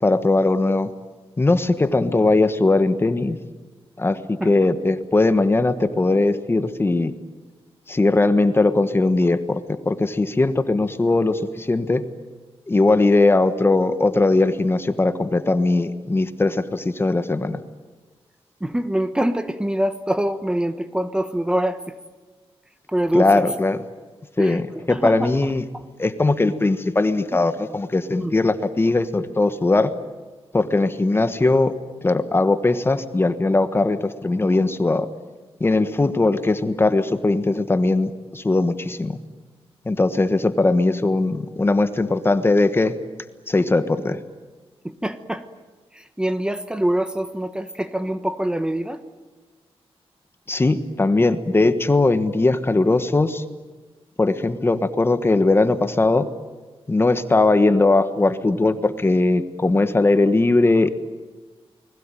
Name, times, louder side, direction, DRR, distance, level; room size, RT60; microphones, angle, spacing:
voice 1, 0.0-0.9 1.4-3.4 4.0-7.1 7.9-12.0 12.7-17.6 23.1-23.8 24.4-25.6 26.0-29.9 30.5-31.7 32.0-35.1 35.6-39.2 39.8-43.0 43.5-44.2 50.5-53.4 54.2-56.3 56.9-60.9, left 2 dB, 20° left, 11 dB, 1.3 m, -19 dB
voice 2, 18.6-21.9 22.9-23.4 24.4-25.3 28.1-28.4 44.8-45.5 45.9-49.0, right 1 dB, 10° right, 10 dB, 1.2 m, -24 dB
29.5 x 20.5 x 9.1 m, 1.3 s
wide cardioid pair, 135°, 10 cm